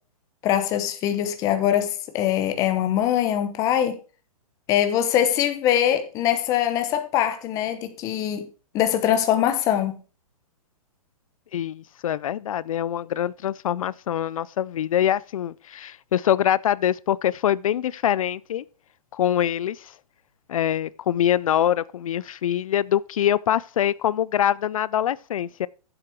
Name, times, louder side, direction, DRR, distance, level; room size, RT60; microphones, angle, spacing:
voice 1, 0.4-4.0 4.7-8.5 8.7-9.9, left 10 dB, 15° left, 0.9 m, -22 dB
voice 2, 11.5-18.6 19.1-19.9 20.5-25.7, left 10 dB, 60° left, 0.4 m, -24 dB
9.8 x 7.7 x 4.6 m
hypercardioid pair, 165°, 19 cm